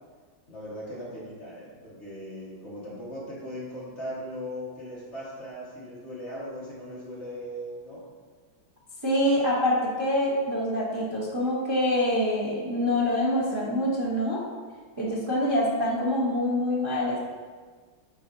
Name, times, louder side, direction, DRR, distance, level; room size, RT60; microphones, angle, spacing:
voice 1, 0.5-8.1, equal, 35° left, -8 dB, 1.7 m, -38 dB
voice 2, 9.0-14.4 15.0-17.2, left 1 dB, 20° right, -6 dB, 0.7 m, -25 dB
9.3 x 4.2 x 2.7 m, 1.5 s
omnidirectional pair, 2.2 m